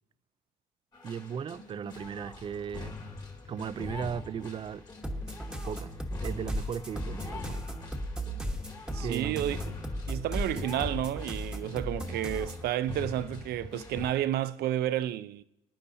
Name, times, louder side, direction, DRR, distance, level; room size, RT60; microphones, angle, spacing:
sound 1, 0.9-14.1, left 3 dB, 25° left, 1.8 m, -43 dB
voice 1, 1.0-3.0 3.5-4.9 5.6-7.7 9.0-9.5 10.5-10.6, right 8 dB, 30° right, 0.4 m, -37 dB
sound 2, 5.0-12.7, equal, 5° right, 1.3 m, -36 dB
voice 2, 8.9-9.6 10.1-15.4, right 12 dB, 70° right, 0.6 m, -31 dB
23.5 x 10.0 x 2.8 m
cardioid pair, 110°, 17 cm